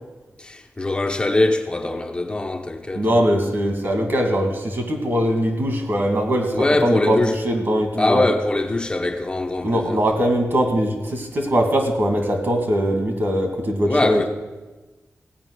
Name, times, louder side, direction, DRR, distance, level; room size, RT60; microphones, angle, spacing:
voice 1, 0.4-3.2 6.5-7.4 8.0-10.0 13.9-14.3, left 2 dB, 20° left, 0.8 m, -22 dB
voice 2, 2.9-8.2 9.6-14.3, equal, 50° right, 2.1 m, -21 dB
16.5 x 5.5 x 9.8 m
wide cardioid pair, 170°, 5 cm